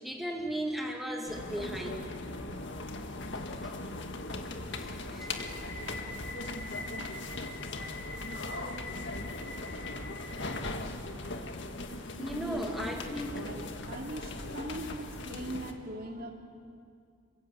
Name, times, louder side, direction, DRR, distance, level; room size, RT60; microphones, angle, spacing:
voice 1, 0.0-2.1 3.6-3.7 4.8-5.3 12.2-13.3, right 1 dB, ahead, 0 dB, 2.3 m, -36 dB
sound 1, 1.3-15.7, left 2 dB, 60° left, 1.9 m, -39 dB
voice 2, 12.3-12.7 13.1-16.3, right 1 dB, 45° right, 2 dB, 2.8 m, -41 dB
27.5 x 24.0 x 8.5 m, 2.2 s
head